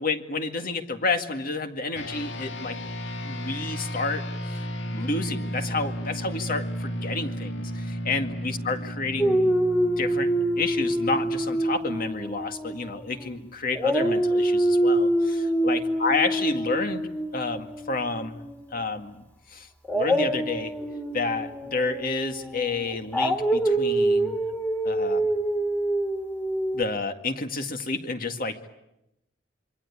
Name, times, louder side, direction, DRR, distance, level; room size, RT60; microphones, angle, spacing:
voice 1, 0.0-2.8 3.2-4.2 4.5-4.6 4.9-9.5 9.8-17.1 17.3-18.4 18.7-19.7 19.9-20.7 21.1-24.4 24.8-25.3 26.7-28.7, left 3 dB, 50° left, 6 dB, 2.1 m, -30 dB
sound 1, 2.0-11.7, equal, 80° left, 1.9 m, -34 dB
Dog, 9.2-13.4 13.7-18.7 19.8-26.8, right 1 dB, 10° left, 2.2 m, -26 dB
27.0 x 24.5 x 8.5 m, 0.88 s
head